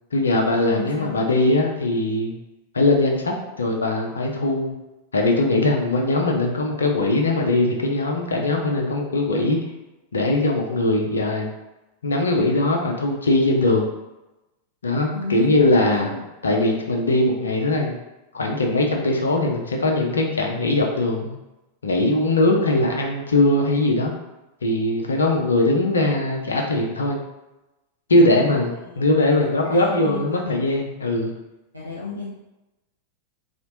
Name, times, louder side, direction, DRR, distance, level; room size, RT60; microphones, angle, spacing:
voice 1, 0.1-2.4 2.7-4.8 5.1-9.6 10.1-11.5 12.0-13.9 14.8-16.1 16.4-18.0 18.3-21.3 21.8-24.1 24.6-27.2 28.1-31.3, left 2 dB, 70° left, 2 dB, 0.6 m, -20 dB
voice 2, 0.7-1.2 15.1-16.3 28.3-28.6 28.9-29.0 29.6-30.6 31.7-32.3, left 3 dB, 85° right, -5 dB, 0.6 m, -33 dB
4.2 x 2.4 x 2.8 m, 0.98 s
figure-of-eight pair, 90°, 0 cm